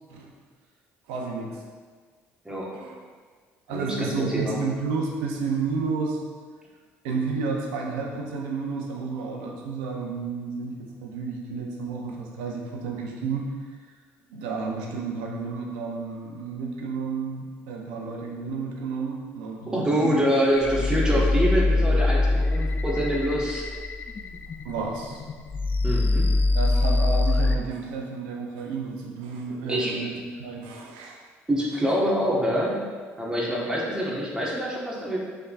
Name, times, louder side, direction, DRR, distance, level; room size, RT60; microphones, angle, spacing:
voice 1, 1.1-1.6 2.7-3.0 3.7-6.2 7.0-13.5 14.3-20.3 24.6-25.2 26.5-31.2, right 4 dB, 85° right, 0 dB, 0.7 m, -31 dB
voice 2, 3.7-4.5 19.7-23.6 25.8-26.3 29.7-29.9 31.5-32.8 33.2-35.2, equal, 15° right, -5 dB, 1.3 m, -25 dB
sound 1, 20.6-27.6, left 2 dB, 35° left, 0.3 m, -24 dB
5.3 x 3.5 x 2.5 m, 1.5 s
supercardioid pair, 70°, 5 cm